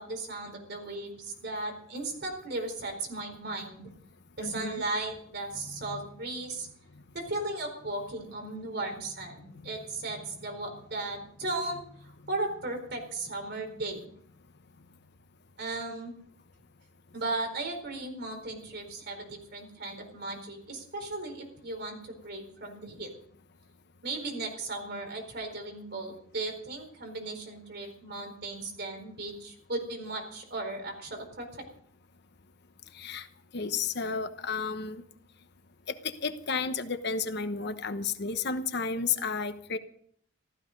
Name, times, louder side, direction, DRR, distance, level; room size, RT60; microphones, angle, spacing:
voice 1, 0.0-3.9 4.4-6.7 7.1-14.0 15.6-16.2 17.1-23.1 24.0-31.6, right 2 dB, 55° right, 3 dB, 4.4 m, -36 dB
voice 2, 4.4-4.8 5.5-6.0 32.9-33.3 33.5-35.0 35.9-39.8, left 5 dB, 55° left, 9 dB, 1.0 m, -32 dB
15.0 x 14.0 x 5.3 m, 0.63 s
head